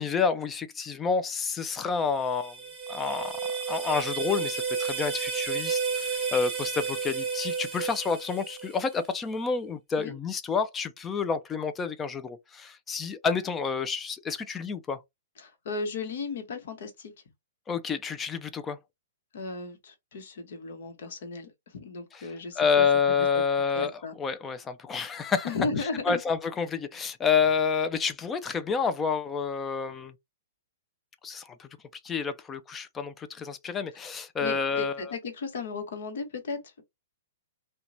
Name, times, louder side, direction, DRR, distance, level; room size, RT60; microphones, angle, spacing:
voice 1, 0.0-2.6 2.9-15.0 17.7-18.8 22.1-22.2 22.6-23.9 24.2-25.5 26.1-30.1 31.2-31.7 32.0-35.1, left 5 dB, 20° left, 0.3 m, -29 dB
sound 1, 1.9-9.0, right 5 dB, 15° right, 1.2 m, -32 dB
voice 2, 15.4-17.1 19.3-22.9 23.2-23.4 23.7-24.2 25.4-26.2 34.4-36.8, left 4 dB, 65° left, 0.9 m, -35 dB
2.8 x 2.2 x 2.5 m
hypercardioid pair, 125°, 0 cm